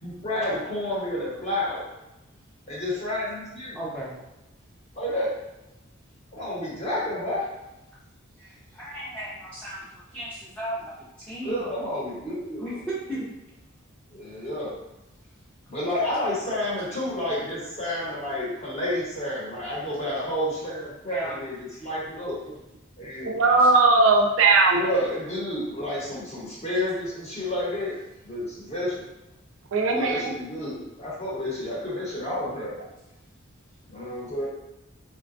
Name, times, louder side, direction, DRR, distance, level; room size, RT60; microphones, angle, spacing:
voice 1, 0.0-1.9 2.7-3.8 5.0-5.3 6.3-7.5 11.4-12.8 14.1-14.8 15.7-22.4 23.0-23.3 24.7-28.0 28.2-29.0 29.9-32.8 33.9-34.5, left 1 dB, 30° left, -6 dB, 1.0 m, -30 dB
voice 2, 3.7-4.2 8.4-9.8 10.1-11.6 12.6-13.2 21.1-21.4 23.6-23.7, right 1 dB, 5° left, -9 dB, 0.5 m, -35 dB
voice 3, 23.2-24.9 29.7-30.3, right 3 dB, 65° right, 2 dB, 0.4 m, -19 dB
3.8 x 2.2 x 2.5 m, 0.92 s
head